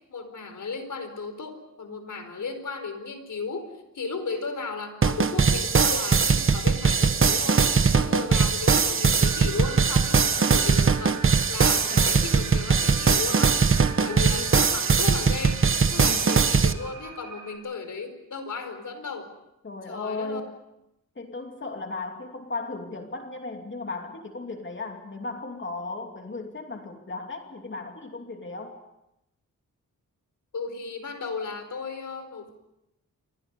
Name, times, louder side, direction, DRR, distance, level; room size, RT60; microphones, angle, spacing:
voice 1, 0.1-13.6 14.0-19.3 19.9-20.4 30.5-32.5, left 4 dB, 65° left, 8 dB, 4.5 m, -35 dB
sound 1, 5.0-16.7, right 5 dB, 40° right, 1.2 m, -21 dB
sound 2, 9.2-17.6, right 6 dB, 90° right, 6.4 m, -41 dB
voice 2, 11.6-12.3 14.0-14.5 15.9-16.3 19.6-20.5 21.2-28.8, left 3 dB, 35° left, 3 dB, 2.7 m, -36 dB
28.5 x 24.5 x 5.4 m, 0.86 s
wide cardioid pair, 120°, 33 cm